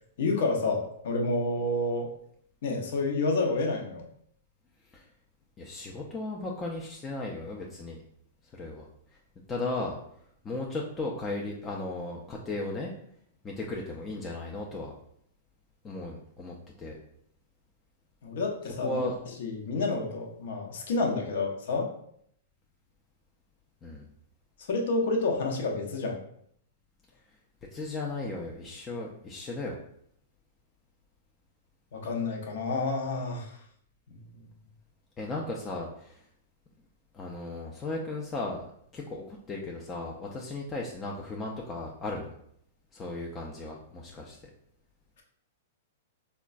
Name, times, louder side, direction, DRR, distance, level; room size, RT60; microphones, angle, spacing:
voice 1, 0.2-2.1 2.6-4.0 18.2-19.0 19.4-21.9 24.7-26.2 31.9-33.5, left 3 dB, 65° left, 1 dB, 0.6 m, -29 dB
voice 2, 5.6-8.0 8.6-8.9 9.5-10.0 10.4-12.9 13.4-14.9 15.8-17.0 18.8-19.2 23.8-24.1 27.7-29.8 35.2-36.2 37.1-38.6 38.9-42.3 42.9-44.4, left 2 dB, 20° left, -2 dB, 0.4 m, -36 dB
3.7 x 2.2 x 2.4 m, 0.69 s
hypercardioid pair, 130°, 0 cm